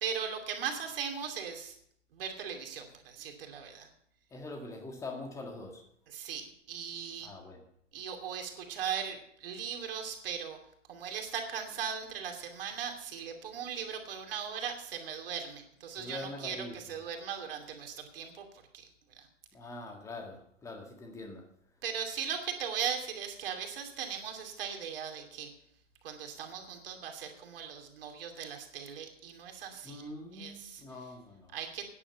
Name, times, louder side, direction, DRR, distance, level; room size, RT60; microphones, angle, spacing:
voice 1, 0.0-1.7 2.1-3.9 6.1-7.3 7.9-10.6 10.9-18.4 18.7-18.9 19.1-19.3 21.8-25.5 26.0-31.1 31.5-31.9, right 7 dB, 50° right, 4 dB, 2.7 m, -38 dB
voice 2, 4.3-5.8 7.2-7.6 16.0-16.7 19.5-21.4 29.8-31.6, left 2 dB, 10° left, 2 dB, 1.7 m, -43 dB
12.5 x 10.0 x 5.8 m, 0.70 s
hypercardioid pair, 145°, 37 cm